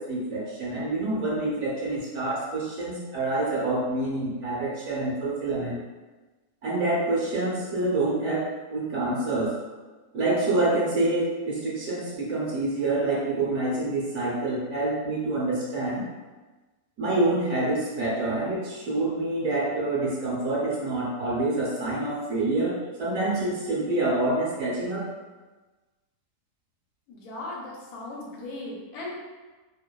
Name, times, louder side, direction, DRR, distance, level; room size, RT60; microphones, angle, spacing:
voice 1, 0.0-5.8 6.6-9.5 10.1-16.0 17.0-25.1, right 2 dB, 65° right, -6 dB, 1.0 m, -27 dB
voice 2, 27.1-29.2, left 2 dB, 75° left, -3 dB, 1.1 m, -37 dB
2.8 x 2.1 x 2.2 m, 1.2 s
omnidirectional pair, 1.6 m